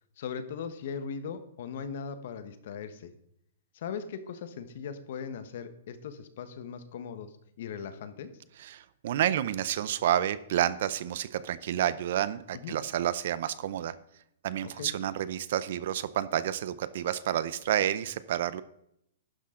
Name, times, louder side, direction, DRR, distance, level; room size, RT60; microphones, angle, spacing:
voice 1, 0.2-3.1 3.7-7.3 7.6-8.3 12.6-12.7 14.8-14.9, left 6 dB, 45° left, 10 dB, 1.2 m, -39 dB
voice 2, 8.6-13.9 14.4-18.6, right 11 dB, 45° right, 16 dB, 0.6 m, -29 dB
12.0 x 10.0 x 3.8 m, 0.74 s
hypercardioid pair, 175°, 0 cm